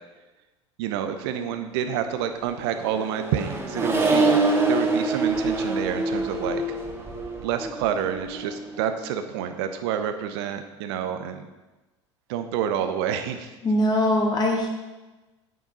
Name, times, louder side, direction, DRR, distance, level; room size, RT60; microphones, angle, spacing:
voice 1, 0.8-4.4 4.7-6.6 7.4-11.5 12.3-13.5, right 9 dB, 60° right, 8 dB, 0.8 m, -28 dB
Accelerating revving vroom, 2.4-9.0, right 2 dB, 15° right, 1.8 m, -26 dB
voice 2, 13.6-14.7, left 1 dB, 25° left, 0 dB, 2.4 m, -21 dB
9.2 x 8.5 x 4.1 m, 1.1 s
figure-of-eight pair, 75°, 16 cm